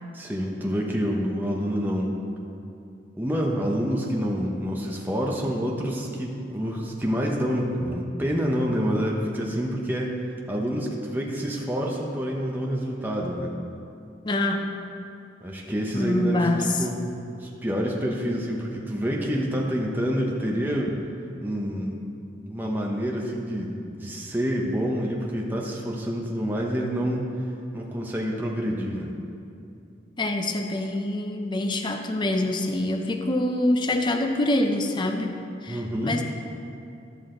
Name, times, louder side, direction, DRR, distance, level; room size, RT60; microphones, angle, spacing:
voice 1, 0.1-2.1 3.2-10.2 10.5-13.6 15.4-16.5 16.8-17.0 17.3-20.9 21.4-22.0 22.5-27.3 27.7-29.1 35.7-36.2, equal, 10° right, -2 dB, 0.9 m, -27 dB
voice 2, 14.2-14.7 15.9-16.9 19.1-19.2 30.2-35.4 35.6-36.2, left 1 dB, 25° left, 5 dB, 0.5 m, -25 dB
12.5 x 6.3 x 3.8 m, 2.6 s
head